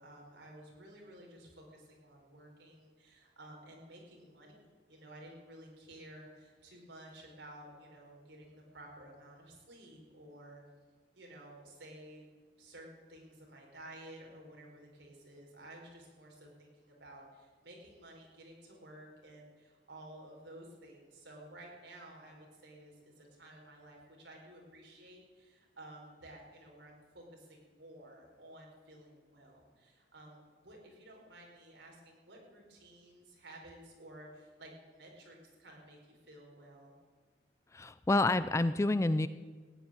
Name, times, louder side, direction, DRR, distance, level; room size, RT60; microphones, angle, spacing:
voice 1, 0.0-10.6 11.1-12.3 12.6-36.9, right 1 dB, 75° right, 0 dB, 4.5 m, -53 dB
voice 2, 37.7-39.3, left 2 dB, 15° left, 14 dB, 0.4 m, -28 dB
16.0 x 9.0 x 9.7 m, 1.5 s
head